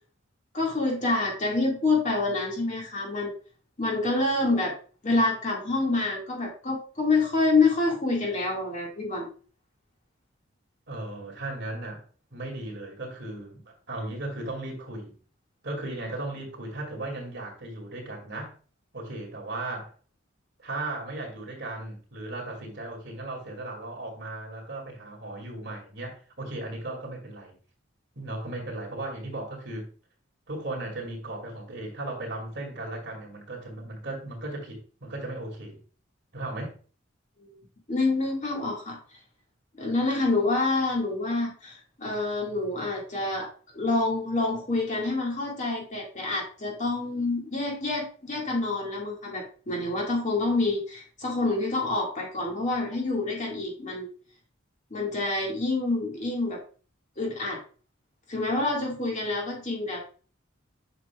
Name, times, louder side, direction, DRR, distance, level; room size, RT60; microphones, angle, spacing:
voice 1, 0.5-3.3 3.8-4.8 5.0-9.3 37.4-37.5 37.9-39.0 39.8-43.5 43.7-54.1 54.9-56.6 57.2-57.6 58.3-60.0, left 3 dB, 35° left, 2.0 m, -27 dB
voice 2, 10.9-12.0 12.3-15.1 15.6-18.5 18.9-19.9 20.6-27.5 28.2-29.9 30.5-35.8 36.3-36.7, right 2 dB, 55° right, 2.3 m, -36 dB
8.0 x 5.8 x 2.3 m
head